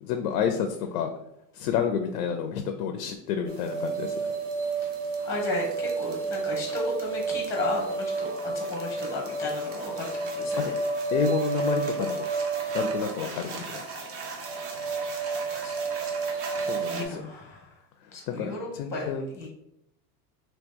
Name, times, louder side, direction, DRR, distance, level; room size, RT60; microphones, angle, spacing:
voice 1, 0.0-1.1 1.5-4.3 10.5-10.6 11.1-12.3 12.7-13.8 16.6-17.3 18.3-19.2, left 7 dB, 75° left, 6 dB, 0.6 m, -29 dB
sound 1, 3.5-17.0, right 4 dB, 30° right, 0.6 m, -31 dB
voice 2, 5.2-10.7 13.2-13.6 14.8-17.8 18.1-19.5, left 2 dB, 5° left, -2 dB, 0.7 m, -35 dB
3.0 x 2.8 x 3.5 m, 0.81 s
supercardioid pair, 135°, 47 cm